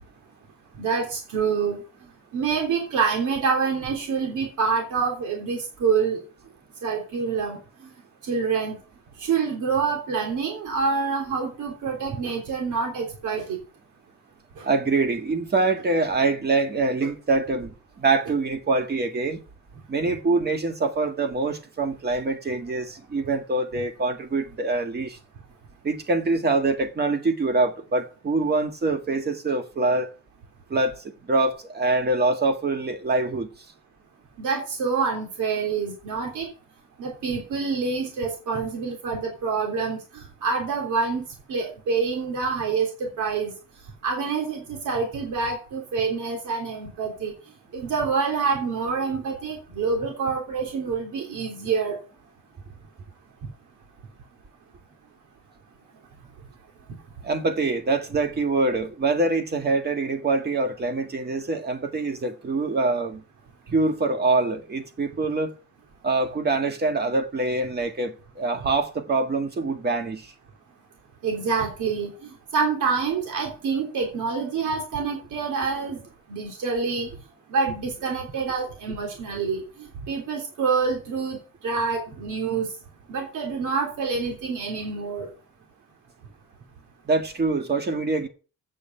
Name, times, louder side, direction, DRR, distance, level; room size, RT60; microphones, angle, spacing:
voice 1, 0.8-1.8 2.3-6.2 6.8-7.6 8.2-8.8 9.2-13.6 14.6-14.7 34.4-36.5 37.0-40.0 40.4-43.5 44.0-47.3 47.7-52.0 71.2-76.0 76.3-77.1 77.5-79.6 80.1-81.4 81.6-82.7 83.1-85.3, right 5 dB, 80° right, 3.2 m, -26 dB
voice 2, 14.6-19.4 19.9-25.2 25.8-30.1 30.7-33.5 57.2-63.2 63.7-65.5 66.0-70.3 87.1-88.3, right 3 dB, 35° right, 1.8 m, -24 dB
8.5 x 6.8 x 7.9 m
cardioid pair, 140°, 30 cm